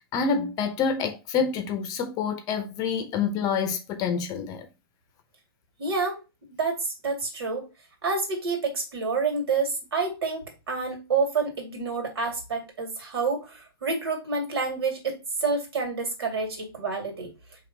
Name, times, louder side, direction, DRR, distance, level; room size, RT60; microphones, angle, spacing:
voice 1, 0.1-4.7, left 6 dB, 30° left, 0.8 m, -27 dB
voice 2, 5.8-6.2 6.5-7.7 8.0-17.3, right 4 dB, 75° right, 2.2 m, -28 dB
4.4 x 3.0 x 3.8 m
hypercardioid pair, 135°, 13 cm